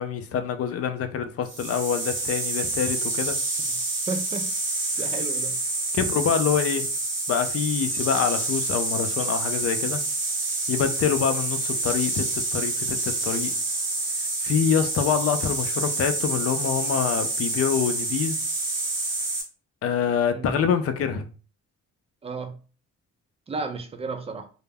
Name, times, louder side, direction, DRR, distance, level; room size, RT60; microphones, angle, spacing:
voice 1, 0.0-3.4 5.9-6.8 7.3-10.0 10.7-13.5 14.4-18.4 19.8-21.3, left 7 dB, 50° left, 0.5 m, -26 dB
sound 1, 1.5-19.4, right 2 dB, 40° right, 0.9 m, -28 dB
voice 2, 4.1-4.5 5.0-5.5 20.3-20.6 22.2-22.5 23.5-24.5, right 3 dB, 20° right, 0.4 m, -33 dB
2.1 x 2.1 x 3.3 m
cardioid pair, 90°, 30 cm